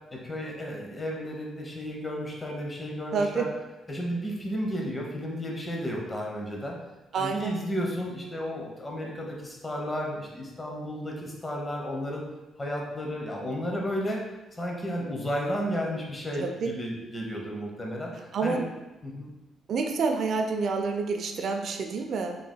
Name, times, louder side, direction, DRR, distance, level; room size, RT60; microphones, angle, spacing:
voice 1, 0.1-3.5 3.9-6.8 7.2-12.2 12.6-14.2 14.6-18.6 19.0-19.3, equal, 20° left, -1 dB, 0.9 m, -33 dB
voice 2, 3.1-3.5 7.1-7.6 16.4-16.7 18.3-18.7 19.7-22.4, right 4 dB, 60° right, 4 dB, 0.4 m, -28 dB
5.5 x 3.8 x 2.2 m, 1.0 s
cardioid pair, 90°, 0 cm